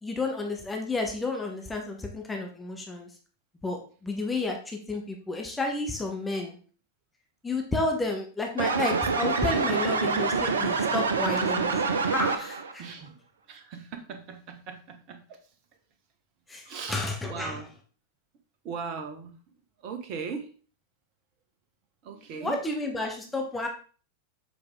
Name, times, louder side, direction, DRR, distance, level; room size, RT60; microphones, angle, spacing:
voice 1, 0.0-3.1 3.6-6.6 7.4-12.8 16.5-17.6 22.4-23.7, left 2 dB, 10° left, 1 dB, 1.2 m, -31 dB
sound 1, 8.6-12.7, right 4 dB, 70° right, 0.7 m, -26 dB
voice 2, 12.8-15.5 16.6-17.7 18.6-19.4 19.8-20.5 22.0-22.6, right 5 dB, 40° right, 6 dB, 1.2 m, -39 dB
7.0 x 4.9 x 3.6 m, 0.39 s
figure-of-eight pair, 90°, 0 cm